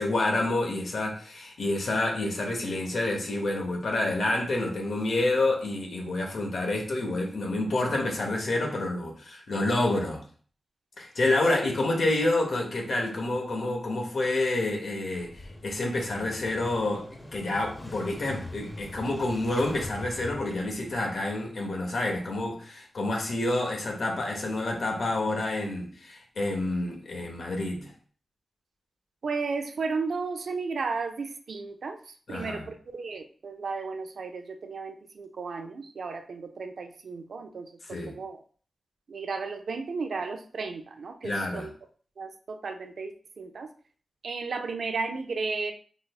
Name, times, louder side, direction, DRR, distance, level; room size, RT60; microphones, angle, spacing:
voice 1, 0.0-10.2 11.0-17.0 17.3-27.9 32.3-32.6 37.9-38.2 41.2-41.7, left 2 dB, 75° left, 0 dB, 0.9 m, -28 dB
Motorcycle / Engine starting, 15.1-21.0, left 2 dB, 30° left, 0.7 m, -43 dB
voice 2, 29.2-38.4 39.1-41.7 42.2-43.7 44.2-45.7, right 4 dB, 75° right, 6 dB, 0.4 m, -34 dB
3.8 x 3.2 x 2.3 m, 0.43 s
cardioid pair, 60°, 0 cm